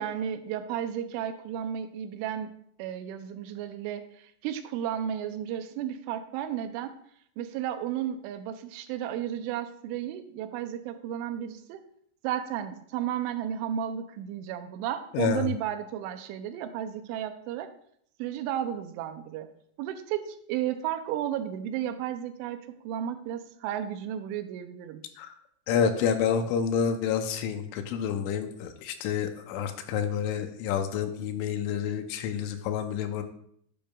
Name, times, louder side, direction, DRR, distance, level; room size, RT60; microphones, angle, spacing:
voice 1, 0.0-2.5 2.8-7.0 7.4-11.8 12.2-17.7 18.2-19.5 19.8-25.0, right 10 dB, 85° right, 9 dB, 3.1 m, -33 dB
voice 2, 15.1-15.5 25.2-25.3 25.7-33.2, left 7 dB, 90° left, 7 dB, 3.2 m, -28 dB
10.0 x 9.2 x 2.4 m, 0.68 s
omnidirectional pair, 5.4 m